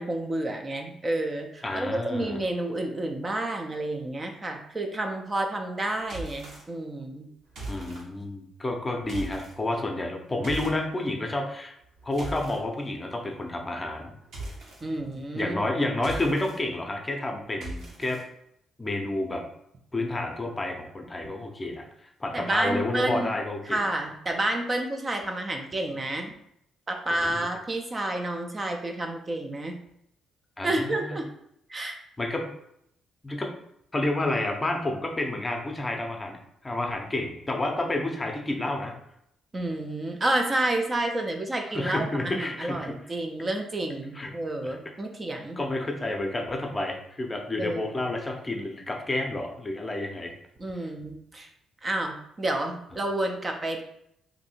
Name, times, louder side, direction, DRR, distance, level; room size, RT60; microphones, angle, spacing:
voice 1, 0.0-7.3 14.8-15.6 22.3-23.3 23.7-26.3 26.9-29.8 30.6-31.3 31.7-32.0 39.5-45.6 47.6-48.0 50.6-51.5 51.8-53.8, right 1 dB, 30° right, 3 dB, 0.4 m, -30 dB
voice 2, 1.6-2.4 7.7-11.7 12.0-14.1 15.3-18.2 18.8-19.4 19.9-21.9 22.2-23.8 27.2-27.5 30.6-31.2 32.2-32.4 33.2-33.5 33.9-38.9 41.7-43.0 44.1-44.3 44.6-44.8 45.6-50.4 50.8-50.9, left 2 dB, 20° left, 3 dB, 0.6 m, -30 dB
sound 1, 6.1-6.6 7.5-8.0 9.0-9.5 10.4-10.8 11.8-12.6 14.3-14.8 15.9-16.6 17.6-18.2, right 1 dB, 70° right, 1.1 m, -38 dB
2.6 x 2.6 x 4.2 m, 0.76 s
cardioid pair, 90°, 0 cm